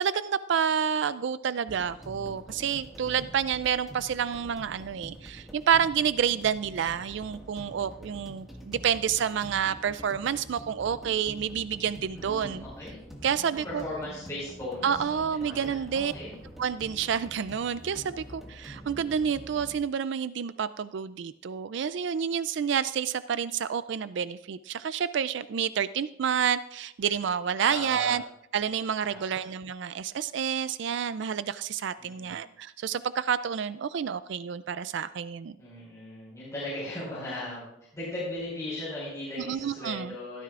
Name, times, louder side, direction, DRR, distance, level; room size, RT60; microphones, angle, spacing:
voice 1, 0.0-12.6 13.2-13.8 14.8-16.1 16.6-28.2 28.5-35.6 39.4-40.1, right 7 dB, 60° right, 14 dB, 0.3 m, -29 dB
sound 1, 1.7-19.8, equal, ahead, 1.8 m, -46 dB
voice 2, 12.1-12.9 13.6-16.3 27.7-28.1 29.0-29.4 32.0-32.3 35.6-37.6 37.9-40.4, left 1 dB, 15° left, -9 dB, 5.0 m, -38 dB
16.5 x 13.5 x 2.5 m, 0.79 s
head